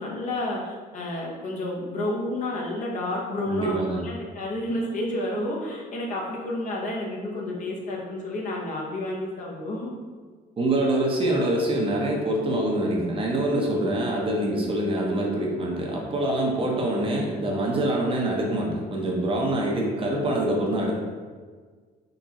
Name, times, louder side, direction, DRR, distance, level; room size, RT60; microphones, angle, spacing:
voice 1, 0.0-9.9 14.0-14.1, left 1 dB, 50° left, -3 dB, 1.0 m, -30 dB
voice 2, 3.5-4.0 10.6-20.9, right 1 dB, 30° right, -1 dB, 0.8 m, -25 dB
3.9 x 3.4 x 2.9 m, 1.5 s
cardioid pair, 110°, 17 cm